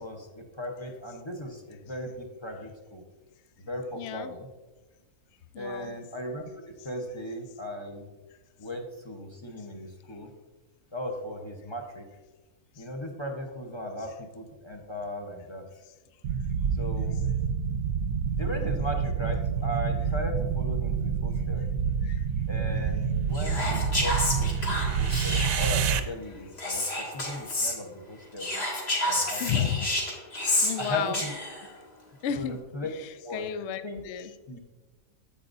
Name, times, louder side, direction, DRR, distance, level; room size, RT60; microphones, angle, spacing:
voice 1, 0.0-3.0 3.6-4.5 5.6-8.1 8.6-10.3 10.9-12.1 12.7-15.7 16.7-17.1 18.4-21.7 22.5-28.5 29.1-29.7 30.8-31.3 32.3-32.9 33.2-33.4 33.8-34.0 34.5-34.6, left 1 dB, 25° left, 2 dB, 0.7 m, -37 dB
voice 2, 4.0-4.3 5.5-5.9 22.0-22.2 29.4-29.9 30.6-31.2 32.2-32.6 32.9-34.3, left 9 dB, 70° left, 11 dB, 0.6 m, -32 dB
sound 1, 16.2-26.0, right 6 dB, 70° right, 1.0 m, -28 dB
Whispering, 23.3-25.9 26.6-27.8 28.4-31.7, left 1 dB, 45° left, 1.7 m, -30 dB
10.0 x 7.8 x 2.6 m, 1.2 s
omnidirectional pair, 1.6 m